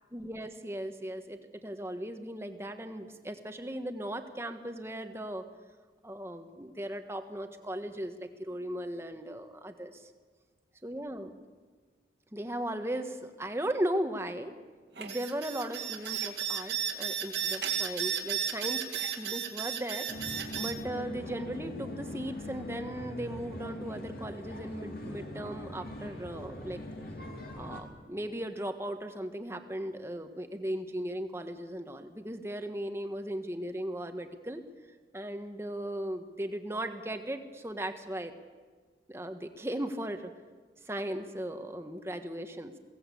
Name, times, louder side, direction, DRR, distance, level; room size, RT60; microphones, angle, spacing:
voice 1, 0.1-5.4 6.0-10.1 10.8-11.3 12.3-14.5 15.0-18.9 19.2-20.1 20.5-26.8 27.6-34.6 35.1-38.3 39.1-40.3 40.8-42.7, right 1 dB, 15° right, 7 dB, 1.4 m, -37 dB
sound 1, 15.0-20.7, right 8 dB, 70° right, 2.3 m, -33 dB
sound 2, 20.1-27.8, left 1 dB, 55° left, 3.1 m, -41 dB
22.5 x 17.0 x 8.4 m, 1.5 s
head